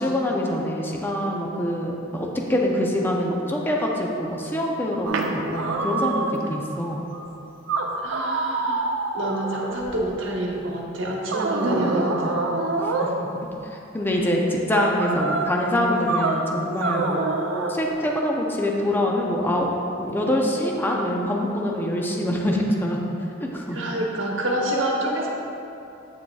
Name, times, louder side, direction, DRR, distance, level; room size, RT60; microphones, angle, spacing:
voice 1, 0.0-7.0 12.8-13.1 13.6-17.2 17.7-19.7 20.0-23.0 23.4-23.8, left 1 dB, 10° left, -1 dB, 0.6 m, -25 dB
sound 1, 5.0-6.5 7.1-7.2 7.7-10.1 11.3-13.2 15.0-15.5 16.1-16.4 16.8-17.8, right 3 dB, 85° right, 0.6 m, -26 dB
voice 2, 8.0-12.5 23.7-25.3, right 1 dB, 70° right, -2 dB, 1.1 m, -27 dB
8.5 x 6.5 x 2.3 m, 2.8 s
head